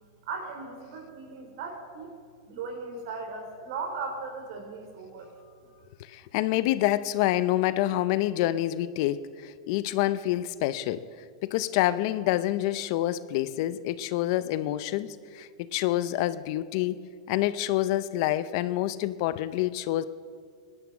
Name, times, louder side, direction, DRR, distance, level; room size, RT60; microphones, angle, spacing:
voice 1, 0.3-2.2 2.4-5.8, right 4 dB, 60° right, 4 dB, 3.6 m, -38 dB
voice 2, 6.0-11.0 11.4-20.1, left 14 dB, 50° left, 15 dB, 0.6 m, -27 dB
20.0 x 11.0 x 6.0 m, 2.1 s
supercardioid pair, 145°, 3 cm